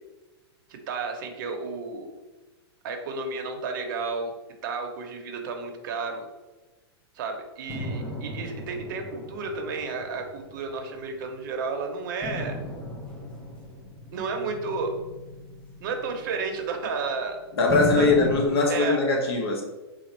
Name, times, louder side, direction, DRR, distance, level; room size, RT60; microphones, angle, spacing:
voice 1, 0.7-2.1 2.8-4.3 4.6-6.2 7.1-12.6 14.1-14.9 15.8-17.4 18.0-18.3 18.7-19.0, right 4 dB, 45° right, 0.7 m, -32 dB
sound 1, 7.7-11.4 12.2-17.2 17.7-18.5, equal, 5° left, 0.4 m, -36 dB
voice 2, 17.5-19.6, left 3 dB, 65° left, 1.0 m, -21 dB
4.2 x 2.3 x 4.3 m
supercardioid pair, 165°, 14 cm